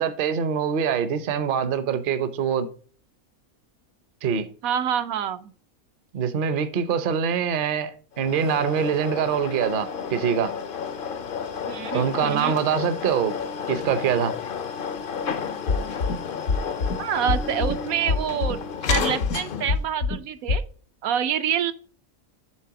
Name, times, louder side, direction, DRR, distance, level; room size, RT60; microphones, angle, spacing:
voice 1, 0.0-2.7 4.2-4.5 6.1-10.5 11.9-13.4 13.7-14.3, right 7 dB, 50° right, 0.7 m, -24 dB
voice 2, 4.6-5.5 11.7-12.6 17.0-20.6 21.0-21.7, right 9 dB, 80° right, 1.0 m, -27 dB
sound 1, 8.2-19.9, left 6 dB, 55° left, 0.6 m, -31 dB
sound 2, 15.7-16.1 16.5-16.9 17.3-17.7 18.1-18.5 18.9-19.3 19.7-20.2 20.5-20.6, left 4 dB, 75° left, 1.2 m, -23 dB
7.6 x 3.3 x 5.7 m
omnidirectional pair, 1.5 m